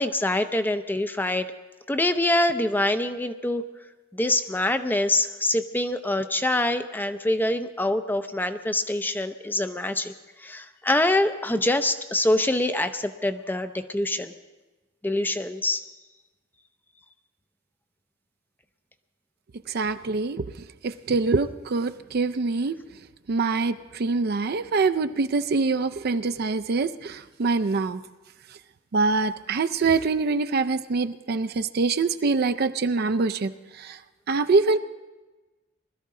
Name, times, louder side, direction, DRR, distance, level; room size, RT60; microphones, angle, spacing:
voice 1, 0.0-1.5 1.9-3.6 4.1-10.1 10.4-14.3 15.0-15.8, left 1 dB, 10° left, 9 dB, 0.5 m, -25 dB
voice 2, 19.7-20.4 20.8-22.7 23.3-28.0 28.9-33.5 33.8-34.0 34.3-34.8, right 4 dB, 50° right, 10 dB, 0.5 m, -24 dB
21.0 x 13.0 x 3.7 m, 1.2 s
head